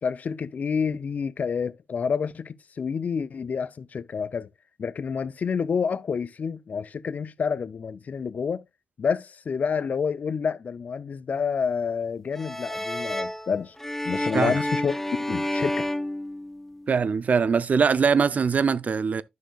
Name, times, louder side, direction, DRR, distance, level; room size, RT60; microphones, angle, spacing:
voice 1, 0.0-4.5 4.8-8.6 9.0-13.7 14.0-14.9 15.3-15.9, left 6 dB, 55° left, 0.5 m, -28 dB
sound 1, 12.3-17.0, left 1 dB, 10° left, 0.7 m, -30 dB
voice 2, 16.9-19.2, right 6 dB, 55° right, 0.5 m, -22 dB
10.5 x 6.2 x 2.3 m
hypercardioid pair, 40°, 3 cm